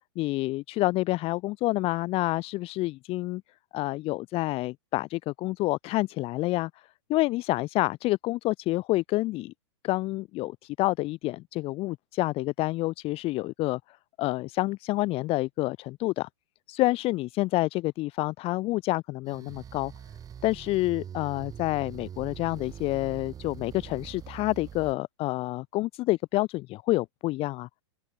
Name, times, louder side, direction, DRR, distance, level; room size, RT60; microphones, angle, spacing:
voice 1, 0.2-3.4 3.7-6.7 7.1-9.5 9.8-16.3 16.7-19.9 20.4-27.7, left 19 dB, 40° left, 2.9 m, -28 dB
sound 1, 19.2-24.9, right 9 dB, 25° right, 6.4 m, -43 dB
open air
hypercardioid pair, 125°, 16 cm